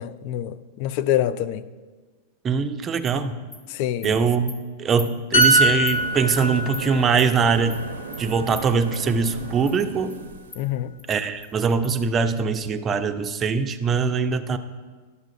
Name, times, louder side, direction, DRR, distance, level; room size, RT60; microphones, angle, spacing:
voice 1, 0.0-1.6 3.7-4.1 10.6-10.9, left 11 dB, 55° left, 0.3 m, -26 dB
voice 2, 2.4-3.4 4.0-4.5 4.8-7.8 8.2-10.1 11.1-14.6, right 5 dB, 25° right, 0.5 m, -22 dB
Animal, 3.0-3.1 3.5-3.6 4.0-4.1 4.5-4.6 5.0-5.1 5.4-5.5 5.9-6.0 6.3-6.4 6.7-6.8 7.2-7.3 7.7-7.8 8.1-8.2 8.6-8.7 8.9-9.3 9.7-9.8 10.1-10.2 10.5-10.6 11.0-11.1 11.4-11.5 11.8-11.9, left 2 dB, 25° left, 1.2 m, -38 dB
sound 1, 5.3-8.9 9.3-9.5, right 1 dB, 80° left, 1.6 m, -23 dB
sound 2, 5.9-10.7, right 6 dB, 80° right, 0.5 m, -37 dB
11.0 x 7.3 x 2.6 m
hypercardioid pair, 120°, 0 cm